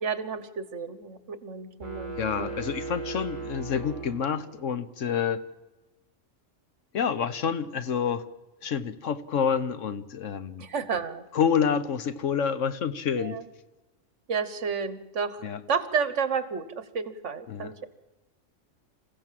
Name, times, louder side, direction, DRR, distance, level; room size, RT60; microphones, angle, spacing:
voice 1, 0.0-2.5 10.6-11.2 13.2-13.5 14.3-17.9, right 6 dB, 70° right, 13 dB, 1.6 m, -31 dB
sound 1, 1.8-4.8, right 4 dB, 35° right, 4.6 m, -37 dB
voice 2, 2.2-5.4 6.9-8.2 8.6-10.6 11.3-13.4 15.4-15.6 17.5-17.7, left 7 dB, 75° left, 12 dB, 1.3 m, -28 dB
27.0 x 15.5 x 7.6 m, 1.1 s
omnidirectional pair, 1.3 m